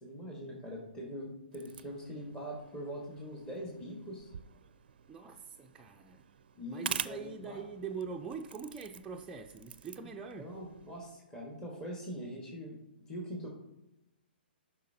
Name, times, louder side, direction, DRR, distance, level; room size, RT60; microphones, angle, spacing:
voice 1, 0.0-4.3 6.5-7.6 10.4-12.8 13.1-13.5, equal, 15° left, -3 dB, 1.6 m, -42 dB
sound 1, 1.5-11.1, right 8 dB, 65° right, 0.4 m, -46 dB
voice 2, 5.1-6.2 6.7-10.5, right 5 dB, 10° right, -1 dB, 0.5 m, -43 dB
10.0 x 5.7 x 2.8 m, 0.92 s
hypercardioid pair, 125°, 6 cm